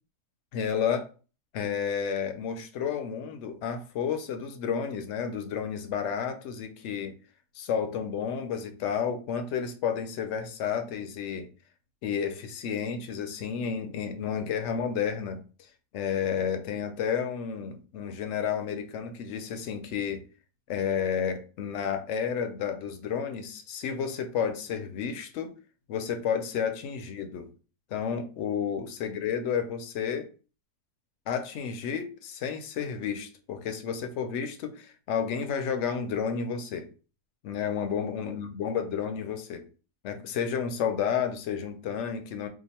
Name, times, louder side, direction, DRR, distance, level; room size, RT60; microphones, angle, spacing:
voice 1, 0.5-1.1 1.5-7.1 7.6-11.5 12.0-15.4 15.9-20.2 20.7-25.5 25.9-27.5 27.9-30.3 31.3-36.9 37.4-39.6 40.0-42.5, left 7 dB, 65° left, 0.7 m, -31 dB
2.7 x 2.4 x 4.1 m
omnidirectional pair, 1.7 m